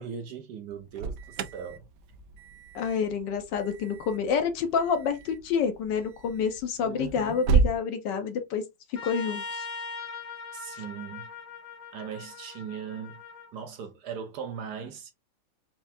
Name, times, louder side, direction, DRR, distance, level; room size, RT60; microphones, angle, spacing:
voice 1, 0.0-1.8 6.8-7.4 10.5-11.3 11.9-13.2 13.5-15.1, right 7 dB, 70° right, 1.1 m, -39 dB
Alarm, 0.7-7.8, right 5 dB, 90° right, 0.7 m, -32 dB
voice 2, 2.7-8.6 8.9-9.6, left 6 dB, 70° left, 1.3 m, -28 dB
Trumpet, 9.0-13.5, left 4 dB, 90° left, 0.5 m, -40 dB
4.4 x 2.4 x 2.6 m
omnidirectional pair, 2.1 m